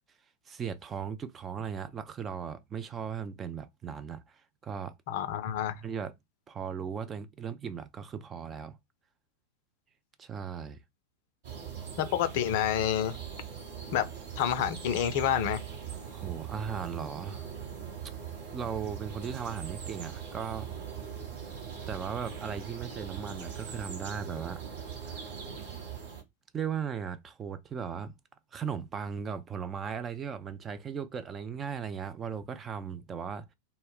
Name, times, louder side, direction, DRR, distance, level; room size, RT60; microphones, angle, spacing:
voice 1, 0.5-4.9 5.7-6.1 6.5-8.8 10.2-10.8 16.1-17.5 18.5-20.7 21.9-24.6 25.0-25.2 26.5-28.1 28.5-33.5, right 7 dB, 20° right, 0.4 m, -37 dB
voice 2, 5.1-5.7 12.0-13.1 13.9-14.1 14.4-15.6, left 10 dB, 50° left, 0.4 m, -28 dB
sound 1, 11.4-26.2, right 7 dB, 55° right, 0.9 m, -41 dB
2.1 x 2.0 x 3.7 m
figure-of-eight pair, 90°, 0 cm